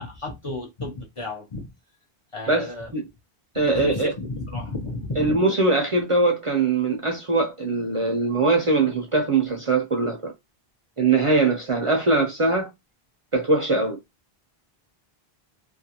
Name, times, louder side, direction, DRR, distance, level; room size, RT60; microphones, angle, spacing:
voice 1, 0.0-1.7 2.3-2.9 3.6-5.4, left 2 dB, 40° left, 0.6 m, -33 dB
voice 2, 2.5-3.0 3.5-4.1 5.2-10.3 11.0-12.7 13.3-14.0, right 3 dB, 40° right, 0.5 m, -22 dB
2.4 x 2.3 x 2.8 m
omnidirectional pair, 1.0 m